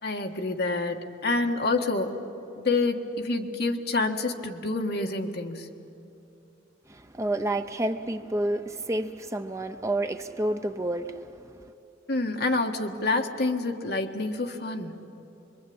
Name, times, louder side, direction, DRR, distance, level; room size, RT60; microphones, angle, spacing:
voice 1, 0.0-2.2 2.6-5.7 12.1-15.0, left 3 dB, 55° left, 3 dB, 1.7 m, -28 dB
voice 2, 6.9-11.7, right 1 dB, 15° right, 7 dB, 0.7 m, -30 dB
26.0 x 23.0 x 8.7 m, 2.9 s
head